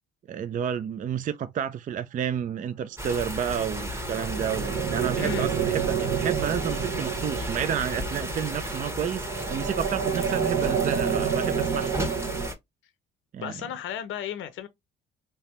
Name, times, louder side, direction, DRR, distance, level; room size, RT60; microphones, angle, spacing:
voice 1, 0.3-11.9 13.3-13.5, right 8 dB, 40° right, 0.4 m, -30 dB
sound 1, 3.0-12.5, equal, 10° right, 1.0 m, -34 dB
sound 2, 3.7-12.5, right 8 dB, 65° right, 0.9 m, -29 dB
voice 2, 5.2-5.5 13.4-14.7, left 9 dB, 70° left, 0.6 m, -34 dB
3.4 x 2.8 x 2.9 m
supercardioid pair, 70°, 21 cm